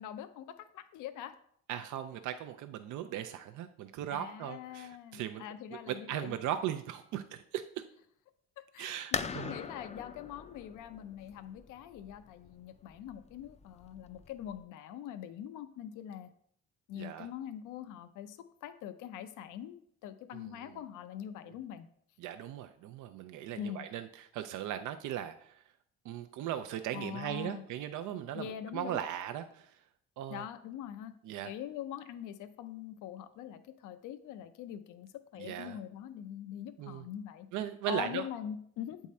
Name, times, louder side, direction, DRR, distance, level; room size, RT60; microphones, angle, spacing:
voice 1, 0.0-1.3 4.1-6.4 8.7-16.3 16.9-21.9 23.6-23.9 26.9-27.6 28.3-29.0 30.3-31.1 31.4-35.1 35.3-37.5 37.9-39.0, left 10 dB, 85° left, 10 dB, 0.5 m, -43 dB
voice 2, 1.7-5.4 5.7-7.6 8.8-9.5 17.0-17.3 20.3-20.6 22.2-25.6 26.0-29.8 30.2-30.4 31.2-31.5 35.4-35.8 36.8-37.0 37.5-38.2, right 11 dB, 80° right, 8 dB, 0.5 m, -38 dB
sound 1, 9.1-14.6, left 5 dB, 25° left, 0.4 m, -41 dB
8.3 x 3.6 x 4.1 m, 0.67 s
cardioid pair, 90°, 30 cm